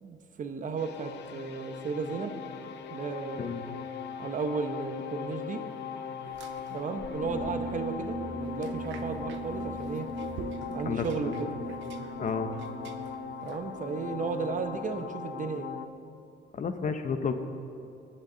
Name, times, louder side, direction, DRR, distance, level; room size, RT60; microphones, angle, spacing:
voice 1, 0.0-2.3 2.9-3.5 4.2-5.6 6.7-10.1 10.7-11.5 13.4-15.7, right 4 dB, 45° right, 7 dB, 1.1 m, -34 dB
sound 1, 0.8-15.9, left 7 dB, 70° left, 0.7 m, -40 dB
sound 2, 6.2-14.9, right 6 dB, 80° right, 0.9 m, -50 dB
sound 3, 7.2-14.7, right 2 dB, 5° right, 2.4 m, -40 dB
voice 2, 10.8-11.5 12.2-12.5 16.5-17.4, left 5 dB, 45° left, 8 dB, 0.9 m, -31 dB
21.5 x 8.8 x 4.0 m, 2.7 s
cardioid pair, 105°, 19 cm